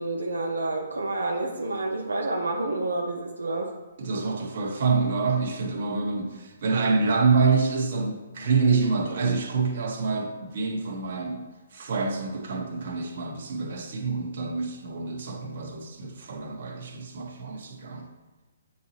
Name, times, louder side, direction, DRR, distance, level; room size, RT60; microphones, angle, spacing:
voice 1, 0.0-3.7, right 2 dB, 85° right, -1 dB, 0.8 m, -29 dB
voice 2, 4.0-18.1, right 4 dB, 55° right, 0 dB, 1.4 m, -27 dB
8.5 x 4.3 x 2.9 m, 1.2 s
hypercardioid pair, 140°, 0 cm